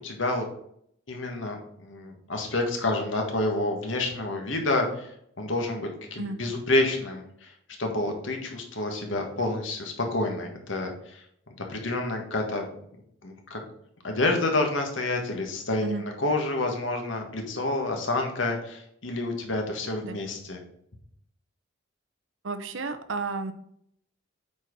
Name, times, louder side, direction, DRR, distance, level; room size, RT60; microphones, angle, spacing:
voice 1, 0.0-0.4 1.1-7.5 7.8-11.2 11.6-12.7 13.2-13.6 14.0-15.9 16.2-20.6, left 2 dB, 75° left, 3 dB, 1.7 m, -28 dB
voice 2, 22.4-23.5, right 3 dB, 75° right, 9 dB, 0.8 m, -32 dB
8.2 x 4.4 x 4.7 m, 0.69 s
head